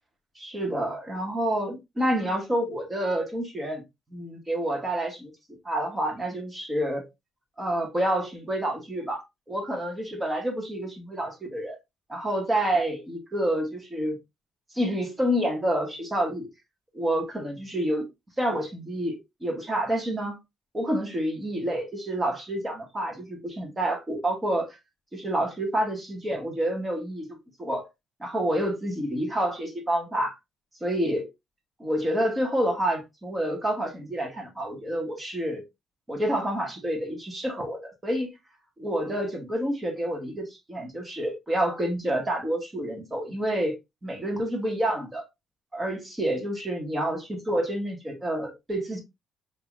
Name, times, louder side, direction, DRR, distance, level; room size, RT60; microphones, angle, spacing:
voice 1, 0.4-3.8 4.1-5.3 5.6-7.1 7.6-11.8 12.1-14.2 14.7-16.5 16.9-18.1 18.4-20.4 20.7-24.8 25.1-27.9 28.2-30.4 30.8-31.3 31.8-35.6 36.1-38.3 38.8-43.8 44.0-45.2 45.7-49.0, right 1 dB, 20° right, 2.1 m, -28 dB
5.5 x 3.5 x 2.7 m
cardioid pair, 90°, 0 cm